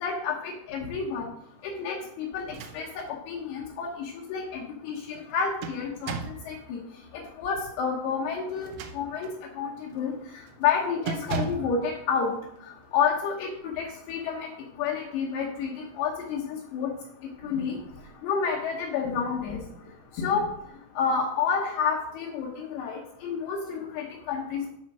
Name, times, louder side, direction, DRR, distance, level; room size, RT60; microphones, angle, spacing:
voice 1, 0.0-1.3 1.8-2.4 2.7-6.1 6.5-6.8 7.4-8.7 8.9-9.3 9.6-10.1 10.6-12.3 12.9-13.5 13.8-14.5 14.8-15.7 16.0-16.9 17.4-17.8 18.2-19.6 20.2-20.5 21.0-24.7, left 6 dB, 70° left, -2 dB, 2.9 m, -29 dB
sound 1, 2.4-3.2 3.6-3.7 5.1-6.5 8.5-9.4 9.9-10.2 10.5-10.7 11.1-11.8, right 5 dB, 80° right, 2.9 m, -35 dB
10.5 x 4.4 x 6.0 m, 0.75 s
omnidirectional pair, 5.3 m